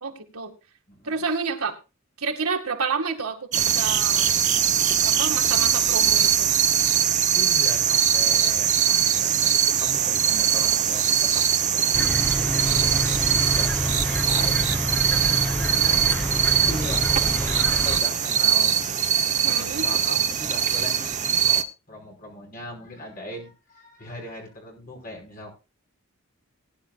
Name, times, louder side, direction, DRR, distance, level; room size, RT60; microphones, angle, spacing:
voice 1, 0.0-0.5 1.0-1.7 2.2-4.3 5.0-6.5 19.4-19.9, right 4 dB, 85° right, 4 dB, 2.0 m, -29 dB
voice 2, 0.9-1.2 7.2-11.9 12.4-18.8 19.4-25.5, left 1 dB, 40° left, 0 dB, 5.4 m, -39 dB
sound 1, 3.5-21.6, right 8 dB, 35° right, 0.9 m, -22 dB
sound 2, 11.9-18.0, equal, 5° left, 0.9 m, -28 dB
19.0 x 10.5 x 2.4 m, 0.30 s
head